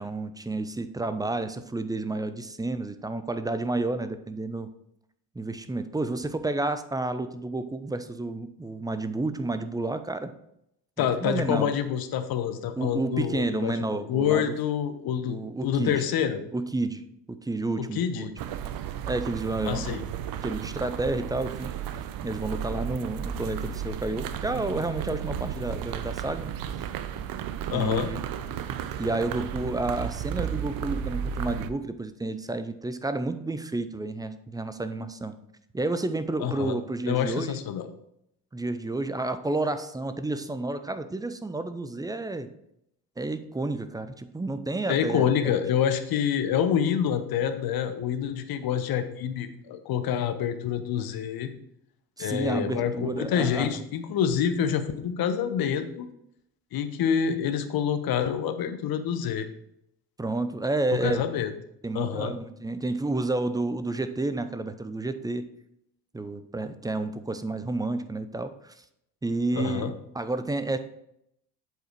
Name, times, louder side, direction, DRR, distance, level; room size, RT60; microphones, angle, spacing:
voice 1, 0.0-4.7 5.4-10.3 11.0-11.7 12.8-14.5 15.2-16.0 16.5-18.3 19.1-20.0 20.4-21.7 22.2-26.5 27.7-28.2 29.0-35.3 35.7-37.5 38.5-42.5 43.2-45.3 52.2-53.7 60.2-61.2 61.8-65.5 66.1-68.7 69.2-70.8, right 2 dB, 10° right, 10 dB, 0.5 m, -30 dB
voice 2, 11.0-15.4 15.6-16.4 17.8-18.3 19.6-20.0 27.7-28.1 36.4-36.8 37.1-37.9 44.9-51.5 52.2-56.1 56.7-59.5 60.9-61.5 61.9-62.3 69.5-69.9, left 8 dB, 50° left, 9 dB, 1.0 m, -27 dB
sound 1, 18.4-31.7, right 9 dB, 50° right, 0.7 m, -34 dB
8.0 x 4.7 x 4.5 m, 0.77 s
hypercardioid pair, 60°, 47 cm